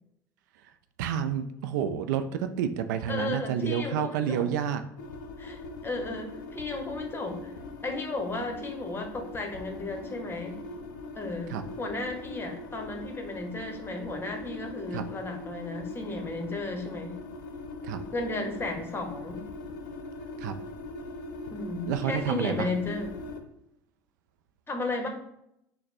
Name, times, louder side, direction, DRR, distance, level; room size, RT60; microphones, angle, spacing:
voice 1, 1.0-4.8 11.5-11.6 14.9-15.0 17.8-18.0 20.4-20.5 21.9-22.7, right 8 dB, 75° right, 9 dB, 0.4 m, -29 dB
voice 2, 3.1-4.5 5.4-7.5 7.8-10.6 11.2-17.2 18.1-19.4 21.5-23.2 24.7-25.1, left 2 dB, 25° left, 4 dB, 1.0 m, -34 dB
rising-tension-glitchy, 5.0-23.4, left 3 dB, 80° left, 0.5 m, -41 dB
4.0 x 2.1 x 4.2 m, 0.78 s
hypercardioid pair, 70°, 10 cm